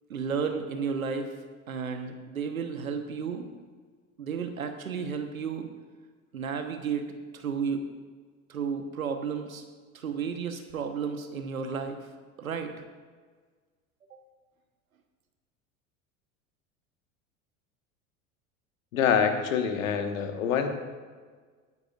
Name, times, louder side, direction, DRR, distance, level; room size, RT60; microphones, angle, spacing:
voice 1, 0.1-1.3 1.7-3.4 4.2-5.7 6.3-7.8 8.5-9.6 9.9-12.0 12.4-12.7 14.1-14.2, right 6 dB, 90° right, 6 dB, 1.2 m, -32 dB
voice 2, 18.9-20.7, left 7 dB, 75° left, 6 dB, 1.5 m, -25 dB
19.0 x 10.0 x 2.5 m, 1.5 s
hypercardioid pair, 80°, 41 cm